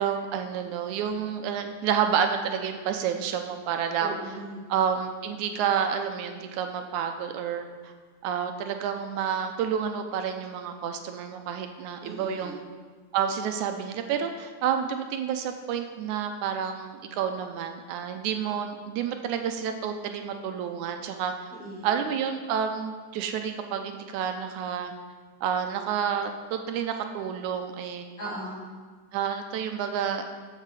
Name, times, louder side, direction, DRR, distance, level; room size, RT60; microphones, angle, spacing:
voice 1, 0.0-4.2 4.7-7.9 8.2-12.6 13.1-21.5 21.8-24.9 25.4-28.1 29.1-30.2, right 8 dB, 85° right, 6 dB, 2.1 m, -29 dB
voice 2, 4.0-4.7 12.0-12.5 21.5-21.9 28.2-28.6, right 1 dB, 15° left, -7 dB, 3.7 m, -38 dB
14.5 x 6.6 x 4.8 m, 1.5 s
omnidirectional pair, 3.4 m